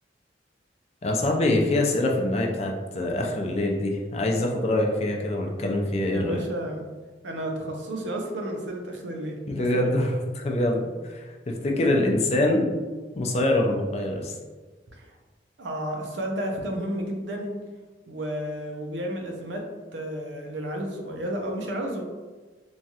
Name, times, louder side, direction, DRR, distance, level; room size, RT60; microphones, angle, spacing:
voice 1, 1.0-6.4 9.5-12.7 13.1-14.3, left 1 dB, 35° left, 0 dB, 0.4 m, -24 dB
voice 2, 6.1-6.9 7.2-10.1 14.9-15.1 15.6-17.6 18.1-19.7 19.9-22.0, right 1 dB, 90° right, 1 dB, 0.6 m, -32 dB
3.0 x 2.3 x 2.7 m, 1.3 s
head